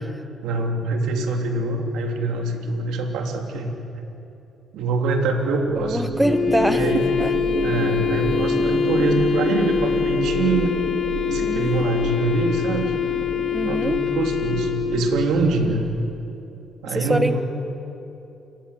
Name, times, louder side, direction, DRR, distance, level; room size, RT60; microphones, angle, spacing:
voice 1, 0.4-3.7 4.7-6.0 6.7-7.1 7.6-10.7 11.3-12.9 13.6-15.8 16.8-17.4, right 3 dB, 85° right, 3 dB, 3.3 m, -24 dB
sound 1, 5.7-16.1, right 3 dB, 50° right, 3.6 m, -30 dB
voice 2, 5.8-6.8 7.2-7.3 11.4-11.9 13.5-14.0 16.9-17.4, right 1 dB, 5° right, 9 dB, 1.2 m, -24 dB
Wind instrument woodwind instrument, 6.2-15.5, left 8 dB, 55° left, 2.3 m, -24 dB
29.0 x 21.0 x 8.5 m, 2.8 s
cardioid pair, 90°, 0 cm